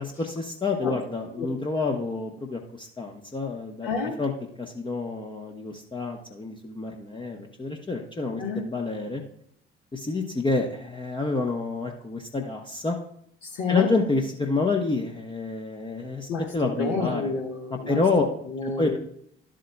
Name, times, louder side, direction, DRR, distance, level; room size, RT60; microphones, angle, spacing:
voice 1, 0.0-3.9 4.2-4.3 4.6-9.2 9.9-13.0 13.7-17.2 17.9-18.2 18.6-19.0, left 3 dB, 15° left, 1 dB, 0.9 m, -28 dB
voice 2, 3.8-4.2 8.4-8.6 13.4-13.9 16.3-19.0, left 4 dB, 60° left, -1 dB, 1.4 m, -30 dB
12.0 x 7.5 x 2.2 m, 0.69 s
figure-of-eight pair, 50°, 32 cm